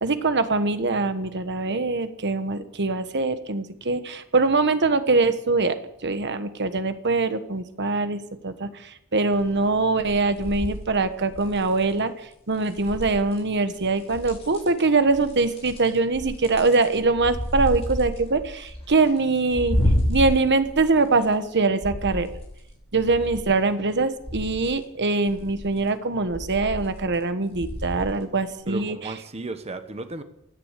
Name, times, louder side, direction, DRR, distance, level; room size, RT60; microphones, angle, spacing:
voice 1, 0.0-5.8 6.0-8.7 9.1-12.1 12.5-19.8 20.1-22.3 22.9-29.0, right 3 dB, 55° right, 10 dB, 1.3 m, -23 dB
sound 1, 9.3-9.7 10.0-11.9 12.6-13.4 13.7-14.8 15.1-21.5 21.8-23.5 23.9-24.7 25.3-25.8 26.2-27.2 27.5-28.1 28.5-28.6, equal, 30° left, 6.3 m, -30 dB
voice 2, 28.7-30.2, right 2 dB, 30° right, 8 dB, 1.1 m, -34 dB
16.5 x 10.5 x 8.2 m, 0.80 s
head